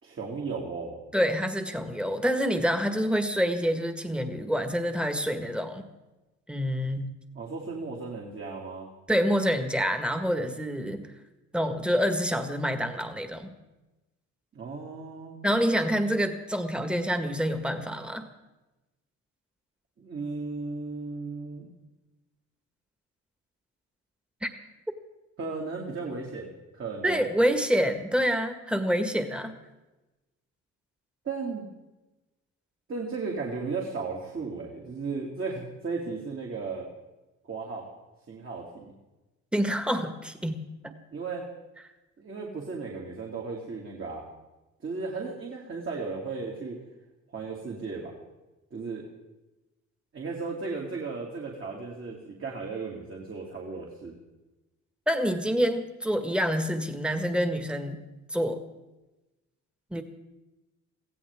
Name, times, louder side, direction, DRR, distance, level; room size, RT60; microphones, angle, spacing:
voice 1, 0.0-1.0 7.3-8.9 14.5-15.4 20.0-21.7 25.4-27.2 31.2-31.6 32.9-36.9 37.4-37.9 38.3-38.9 41.1-41.4 42.2-44.3 44.8-46.8 47.3-48.1 48.7-49.0 50.1-54.1, right 4 dB, 45° right, -2 dB, 2.8 m, -35 dB
voice 2, 1.1-5.8 6.5-7.1 9.1-11.0 11.5-13.5 15.4-18.3 24.4-24.5 27.0-29.6 39.5-40.6 55.1-58.0 58.3-58.6 59.9-60.0, equal, 5° right, 7 dB, 1.7 m, -27 dB
24.0 x 16.0 x 3.7 m, 1.1 s
cardioid pair, 90°, 30 cm